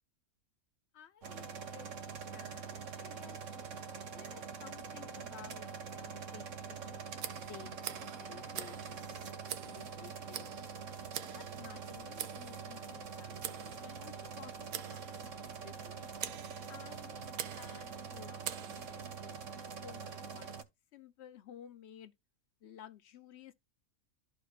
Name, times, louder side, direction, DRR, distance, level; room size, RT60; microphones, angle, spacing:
voice 1, 0.9-1.9 2.3-3.4 4.2-7.1 7.5-10.5 11.3-16.1 16.7-19.4 19.8-20.5 20.9-22.1 22.6-23.5, left 9 dB, 65° left, 0.7 m, -55 dB
sound 1, 1.2-20.6, right 6 dB, 60° right, 1.1 m, -45 dB
Tick, 7.2-19.2, right 11 dB, 85° right, 1.2 m, -46 dB
12.5 x 4.9 x 2.4 m
omnidirectional pair, 1.5 m